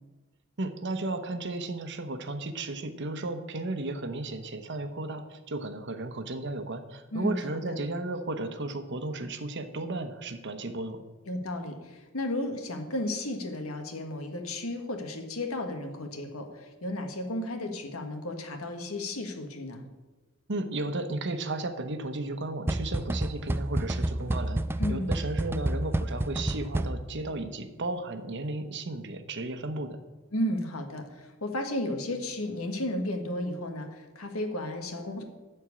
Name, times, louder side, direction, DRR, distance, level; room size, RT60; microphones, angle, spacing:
voice 1, 0.6-11.0 20.5-30.0, right 2 dB, 55° right, 9 dB, 1.0 m, -34 dB
voice 2, 7.1-7.8 11.3-19.8 24.8-25.1 30.3-35.2, left 1 dB, 90° left, 5 dB, 1.6 m, -33 dB
sound 1, 22.7-27.3, right 1 dB, 10° right, 0.3 m, -30 dB
12.5 x 4.5 x 8.5 m, 1.2 s
head